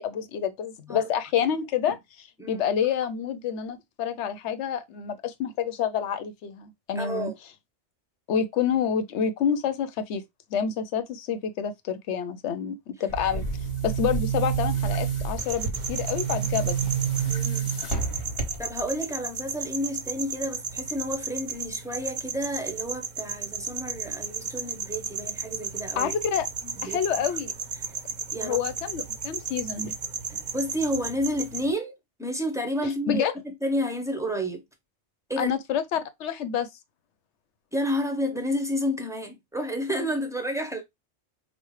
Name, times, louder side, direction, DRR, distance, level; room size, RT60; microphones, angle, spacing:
voice 1, 0.0-7.3 8.3-10.2 10.5-13.4 13.8-16.8 26.0-26.5 26.8-27.5 28.4-29.9 32.8-33.3 35.4-36.7, left 8 dB, 75° left, 0.9 m, -28 dB
voice 2, 6.9-7.3 17.3-17.8 18.6-26.1 26.6-27.0 28.3-28.6 30.3-31.9 32.2-34.6 35.3-35.5 37.7-40.8, equal, 5° right, 0.6 m, -30 dB
Boom, 13.1-18.9, right 7 dB, 55° left, 1.3 m, -29 dB
sound 1, 15.4-31.7, right 5 dB, 50° right, 0.7 m, -34 dB
5.2 x 2.1 x 3.1 m
omnidirectional pair, 1.2 m